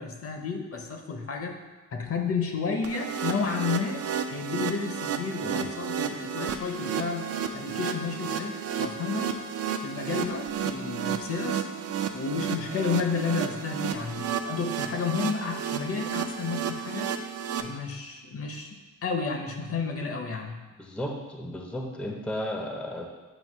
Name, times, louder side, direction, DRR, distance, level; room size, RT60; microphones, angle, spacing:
voice 1, 0.0-1.6 1.9-4.0 4.3-7.3 7.5-9.4 9.8-11.6 12.1-17.1 17.6-20.6, left 5 dB, 45° left, 4 dB, 0.7 m, -31 dB
sound 1, 2.8-17.6, right 7 dB, 50° right, 0.4 m, -32 dB
voice 2, 20.8-23.1, left 1 dB, 5° left, 0 dB, 0.5 m, -34 dB
7.7 x 2.7 x 5.4 m, 1.2 s
wide cardioid pair, 155°, 31 cm